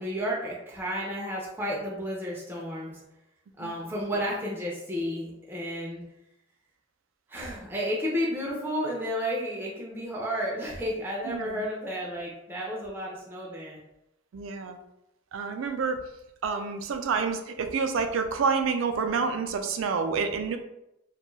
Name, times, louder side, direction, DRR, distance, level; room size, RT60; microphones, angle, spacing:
voice 1, 0.0-3.0 3.6-6.0 7.3-13.8, equal, 10° right, -4 dB, 0.4 m, -32 dB
voice 2, 11.3-11.6 14.3-14.8 15.3-16.0 16.4-20.6, right 5 dB, 75° right, 7 dB, 0.4 m, -28 dB
2.6 x 2.2 x 3.0 m, 0.86 s
head